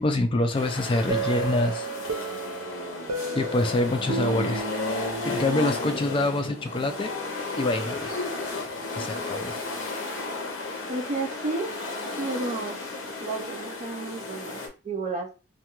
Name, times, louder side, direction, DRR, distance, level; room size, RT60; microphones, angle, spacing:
voice 1, 0.0-1.9 3.3-4.7 5.3-7.1 7.6-8.1 8.5-9.5, left 2 dB, 25° left, 6 dB, 0.4 m, -26 dB
Brazilain Street, 0.5-14.7, left 3 dB, 70° left, 0.7 m, -33 dB
sound 1, 1.1-5.8, right 4 dB, 90° right, 0.5 m, -33 dB
voice 2, 10.9-11.7 12.2-12.8 13.2-15.3, right 3 dB, 35° right, 0 dB, 0.4 m, -32 dB
2.3 x 2.3 x 2.9 m, 0.32 s
head